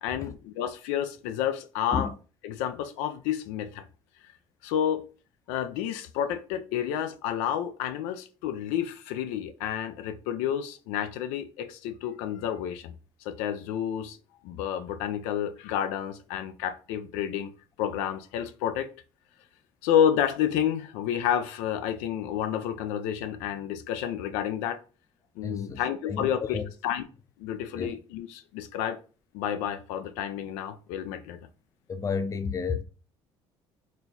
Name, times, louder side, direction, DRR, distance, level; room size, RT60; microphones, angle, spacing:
voice 1, 0.0-2.1 2.4-3.9 4.6-5.1 5.5-13.0 13.2-14.2 14.4-17.5 17.8-18.9 19.8-24.8 25.4-27.0 27.4-29.0 29.3-31.4, left 9 dB, 85° left, 0.4 m, -30 dB
voice 2, 25.4-25.8 26.1-26.6 27.7-27.9 31.9-32.8, left 5 dB, 30° left, 0.6 m, -31 dB
4.3 x 2.2 x 3.8 m
supercardioid pair, 90°, 11 cm